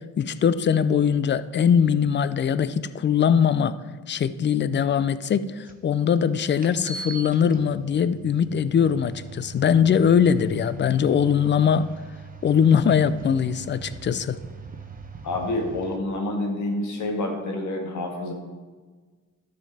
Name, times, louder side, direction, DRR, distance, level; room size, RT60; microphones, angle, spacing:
voice 1, 0.2-3.8 4.1-11.9 12.4-14.4, left 7 dB, 40° left, 15 dB, 0.4 m, -21 dB
sound 1, 5.7-5.8 6.6-16.0, right 5 dB, 30° right, 1.0 m, -41 dB
voice 2, 15.2-18.3, left 2 dB, 70° left, 1 dB, 1.9 m, -28 dB
12.5 x 5.3 x 4.2 m, 1.4 s
cardioid pair, 90°, 30 cm